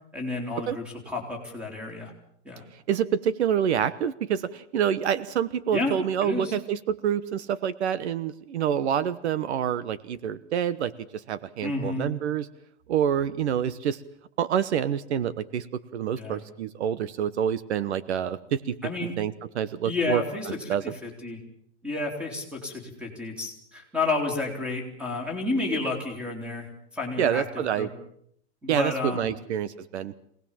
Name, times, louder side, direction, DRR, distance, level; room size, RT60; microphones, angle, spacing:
voice 1, 0.1-2.1 2.4-2.7 5.7-6.5 11.6-12.1 16.2-16.4 18.8-19.1 19.8-21.4 21.8-27.4 27.8-27.9 28.6-29.4, left 3 dB, 5° right, 5 dB, 3.5 m, -31 dB
voice 2, 2.7-12.5 12.9-14.0 14.4-15.7 15.9-18.8 19.2-20.2 20.7-20.9 27.2-27.9 28.7-30.1, right 9 dB, 70° right, 17 dB, 1.2 m, -27 dB
25.5 x 19.0 x 7.4 m, 0.68 s
supercardioid pair, 170°, 35 cm